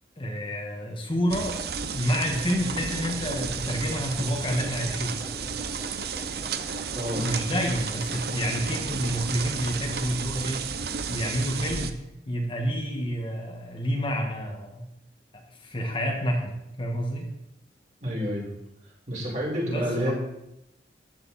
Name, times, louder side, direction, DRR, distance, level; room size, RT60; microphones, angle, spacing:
voice 1, 0.2-1.6 1.9-5.2 7.2-10.6 11.1-12.0 12.2-14.9 15.6-17.3 19.6-20.1, equal, 30° left, 0 dB, 1.6 m, -29 dB
sound 1, 1.3-11.9, right 6 dB, 60° right, 0.8 m, -32 dB
sound 2, 2.1-8.5, left 1 dB, 5° left, 1.8 m, -46 dB
voice 2, 6.9-7.5 18.0-18.5 19.1-20.1, equal, 40° right, -3 dB, 4.8 m, -29 dB
14.0 x 9.8 x 4.3 m, 0.85 s
head